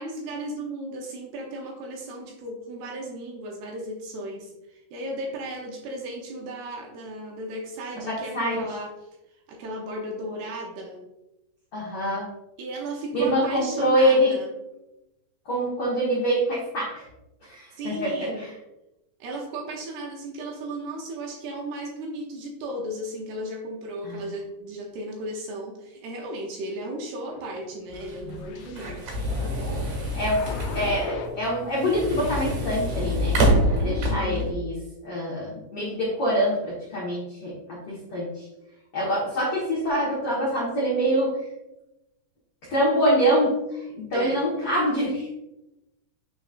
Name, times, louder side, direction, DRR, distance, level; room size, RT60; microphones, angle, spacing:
voice 1, 0.0-8.9 9.5-11.0 12.6-14.5 17.8-18.5 19.2-29.2 33.8-34.5 44.1-44.4, right 1 dB, 75° right, 0 dB, 2.6 m, -35 dB
voice 2, 8.1-8.6 11.7-12.3 13.1-14.3 15.5-17.1 17.4-18.5 24.0-24.2 30.1-33.4 33.7-34.8 35.0-38.5 38.9-41.4 42.7-45.3, equal, 70° left, -7 dB, 1.4 m, -25 dB
sound 1, 27.3-31.4 31.7-32.6, left 6 dB, 90° left, 2.9 m, -40 dB
sound 2, 27.9-34.5, equal, 60° right, 2.6 m, -26 dB
9.0 x 4.1 x 2.5 m, 0.93 s
omnidirectional pair, 5.2 m